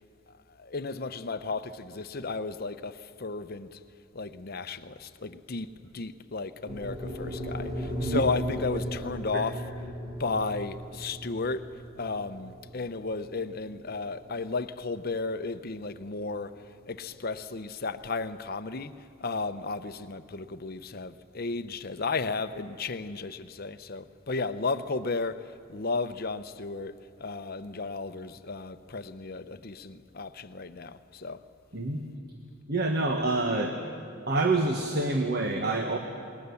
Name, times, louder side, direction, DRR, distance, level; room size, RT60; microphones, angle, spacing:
voice 1, 0.6-3.8 4.1-5.7 5.9-9.6 10.2-11.7 12.0-16.5 16.9-18.9 19.2-31.4, left 3 dB, 45° left, 0.7 m, -34 dB
sound 1, 6.7-14.9, equal, 25° right, 4.1 m, -37 dB
voice 2, 32.7-33.7 34.3-36.0, right 2 dB, 45° right, 1.4 m, -27 dB
28.5 x 20.0 x 7.1 m
head